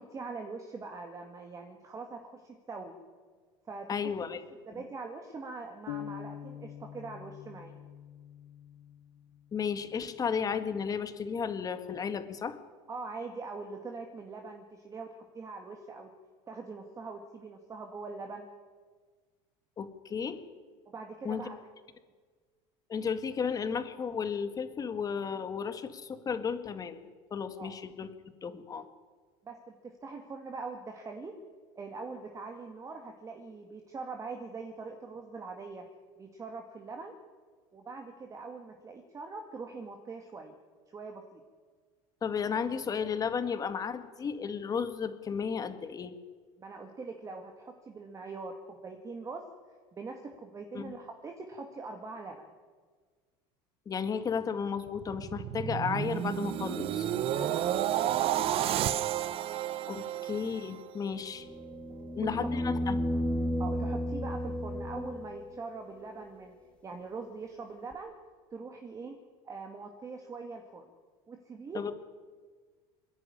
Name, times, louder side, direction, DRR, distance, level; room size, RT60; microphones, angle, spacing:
voice 1, 0.0-3.0 3.7-4.1 4.7-7.7 12.9-16.1 16.5-18.5 20.9-21.6 27.6-27.8 29.4-31.3 31.8-35.9 36.2-37.1 37.7-40.5 40.9-41.4 46.6-48.5 48.8-49.5 49.9-52.5 57.2-59.0 61.9-62.5 63.6-66.5 66.8-68.1 68.5-69.2 69.4-70.9 71.3-71.8, right 4 dB, 25° right, 4 dB, 2.1 m, -43 dB
voice 2, 3.9-4.4 4.7-4.8 9.5-12.6 19.8-20.4 21.2-21.4 22.9-27.0 27.3-28.1 28.4-28.8 42.2-46.2 50.8-50.9 53.9-57.1 59.9-61.5 62.2-63.0 71.7-71.9, left 6 dB, 30° left, 10 dB, 1.8 m, -33 dB
sound 1, 5.9-9.6, left 11 dB, 75° left, 0.9 m, -45 dB
sound 2, 54.9-61.1 61.6-61.8, right 11 dB, 45° right, 0.9 m, -31 dB
sound 3, 61.4-65.5 67.9-68.0, equal, 10° left, 1.9 m, -33 dB
26.0 x 11.0 x 9.8 m, 1.5 s
supercardioid pair, 125°, 13 cm